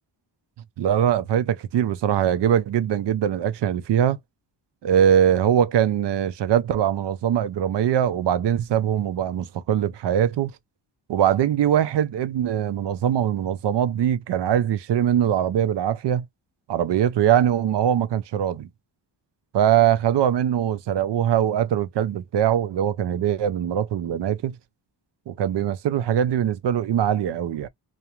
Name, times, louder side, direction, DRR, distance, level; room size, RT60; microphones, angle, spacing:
voice 1, 0.8-4.2 4.8-10.5 11.1-16.2 16.7-18.7 19.5-24.6 25.3-27.7, right 10 dB, 70° right, 0.5 m, -22 dB
2.4 x 2.1 x 2.9 m
wide cardioid pair, 95°, 44 cm